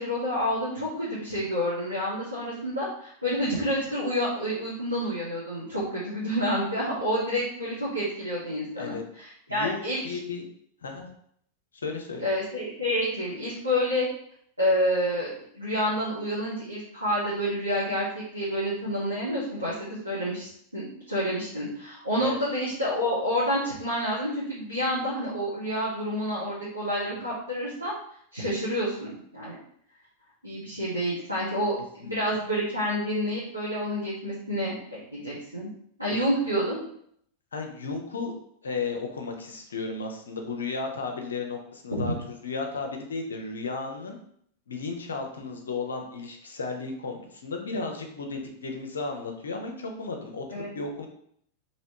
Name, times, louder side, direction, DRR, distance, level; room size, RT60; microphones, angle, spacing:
voice 1, 0.0-10.0 12.2-14.1 14.6-18.1 18.3-27.9 28.3-29.5 30.4-35.7 36.0-36.8 41.9-42.1 50.5-50.7, equal, 85° right, -8 dB, 0.9 m, -29 dB
voice 2, 9.5-10.4 10.8-11.0 11.7-12.3 22.2-22.4 32.0-32.1 36.1-36.2 37.5-38.3 38.6-42.1 42.4-44.2 44.7-51.1, left 4 dB, 70° left, 3 dB, 0.6 m, -34 dB
3.1 x 2.8 x 2.8 m, 0.67 s
figure-of-eight pair, 90°, 0 cm